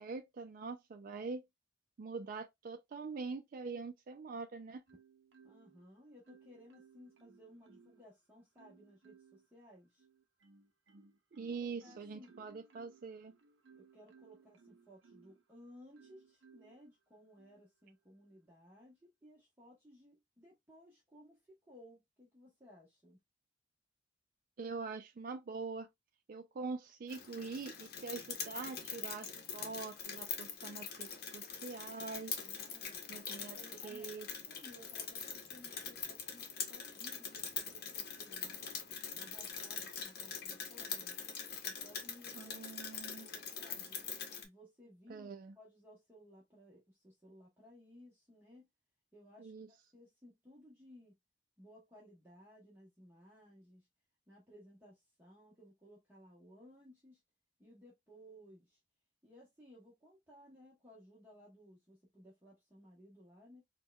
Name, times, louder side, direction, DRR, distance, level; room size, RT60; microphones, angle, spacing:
voice 1, 0.0-1.4 2.0-4.8 11.3-13.3 24.6-25.9 26.3-32.3 33.1-34.3 42.4-43.3 45.1-45.5 49.4-49.7, right 4 dB, 50° right, 0.4 m, -44 dB
Marimba xylophone, 4.9-5.8 6.3-8.1 8.6-9.5 10.0-15.4 15.9-16.8 17.4-17.6, right 5 dB, 90° right, 0.6 m, -63 dB
voice 2, 5.4-10.0 11.5-12.3 13.7-23.2 32.4-38.6 39.2-41.2 41.6-42.6 42.9-44.0 44.4-48.7 49.1-51.1 51.6-53.9 54.3-57.2 57.6-58.8 59.2-63.6, equal, 10° right, 0.9 m, -59 dB
Rain, 27.1-44.4, left 6 dB, 60° left, 0.8 m, -43 dB
4.4 x 2.2 x 2.2 m
head